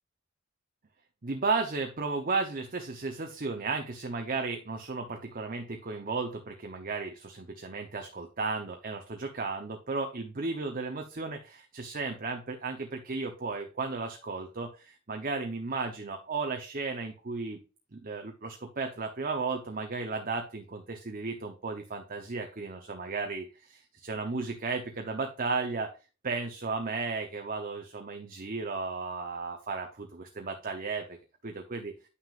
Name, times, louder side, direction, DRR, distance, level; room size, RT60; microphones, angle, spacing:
voice 1, 1.2-17.6 17.9-25.9 26.2-31.2 31.4-31.9, right 4 dB, 40° right, 4 dB, 0.9 m, -34 dB
9.4 x 6.1 x 2.5 m, 0.32 s
head